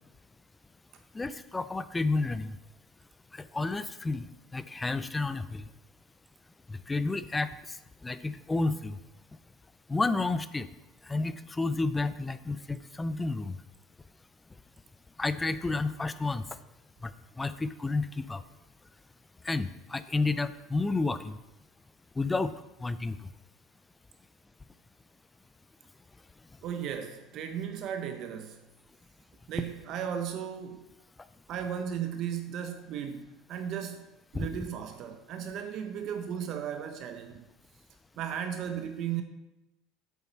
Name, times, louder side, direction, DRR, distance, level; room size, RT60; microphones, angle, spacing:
voice 1, 1.1-2.6 3.3-4.3 4.5-5.6 6.7-7.5 8.0-9.0 9.9-10.7 11.1-13.6 15.2-16.4 17.0-17.1 17.4-18.4 19.4-21.4 22.2-22.5 22.8-23.2 34.3-34.5, left 3 dB, 10° left, 0.3 m, -30 dB
voice 2, 26.6-28.6 29.5-30.9 31.5-34.1 34.3-37.5 38.2-39.2, right 8 dB, 40° right, 0.6 m, -35 dB
8.2 x 7.0 x 4.5 m
cardioid pair, 160°, 0 cm